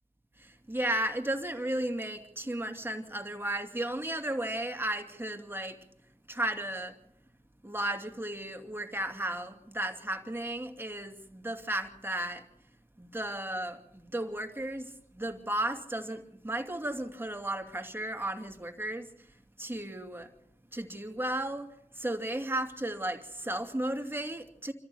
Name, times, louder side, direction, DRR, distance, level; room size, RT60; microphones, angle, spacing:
voice 1, 0.4-5.8 6.3-6.9 7.6-12.4 13.0-19.1 19.6-20.3 20.7-21.7 22.0-24.7, right 1 dB, 20° right, 2.6 m, -34 dB
26.5 x 14.0 x 7.1 m
cardioid pair, 50°, 12 cm